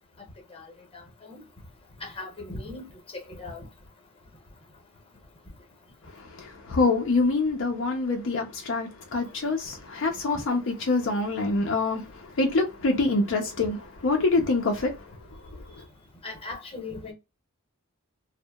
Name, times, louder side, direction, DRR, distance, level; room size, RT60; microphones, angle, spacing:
voice 1, 2.0-2.8 3.4-3.6 16.2-17.1, left 3 dB, 25° left, 0.8 m, -37 dB
voice 2, 6.4-12.0 12.4-14.9, left 3 dB, 60° left, 0.5 m, -25 dB
2.7 x 2.1 x 2.2 m
head